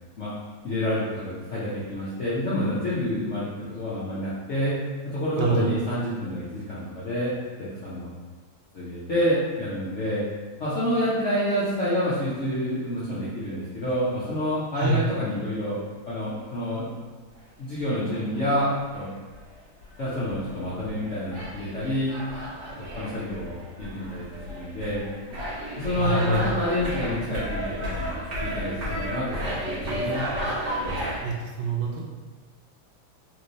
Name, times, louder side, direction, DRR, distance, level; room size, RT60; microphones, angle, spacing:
voice 1, 0.6-4.8 5.0-8.1 8.7-10.2 10.6-15.8 16.1-16.9 17.6-19.1 20.0-22.2 22.8-23.5 23.8-25.0 25.8-30.3, equal, 60° left, -10 dB, 0.7 m, -28 dB
voice 2, 5.4-5.7 14.7-15.0 26.0-26.5 31.2-32.0, right 3 dB, 75° right, -1 dB, 1.3 m, -25 dB
sound 1, 18.1-19.1 19.3-31.2, equal, 45° right, 1.2 m, -33 dB
3.4 x 3.1 x 2.6 m, 1.4 s
omnidirectional pair, 2.1 m